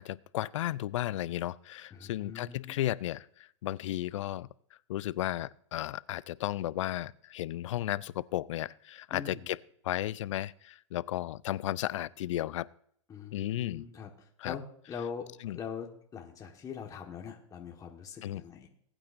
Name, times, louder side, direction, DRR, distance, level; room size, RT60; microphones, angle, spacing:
voice 1, 0.0-4.5 4.9-9.6 9.8-12.7 13.3-13.9 14.4-14.6 15.4-15.6 18.2-18.4, left 14 dB, 70° left, 21 dB, 0.4 m, -34 dB
voice 2, 1.9-2.9 9.1-9.4 13.1-14.1 14.4-18.7, left 6 dB, 20° left, 1 dB, 1.4 m, -42 dB
19.5 x 9.0 x 2.5 m, 0.67 s
hypercardioid pair, 125°, 16 cm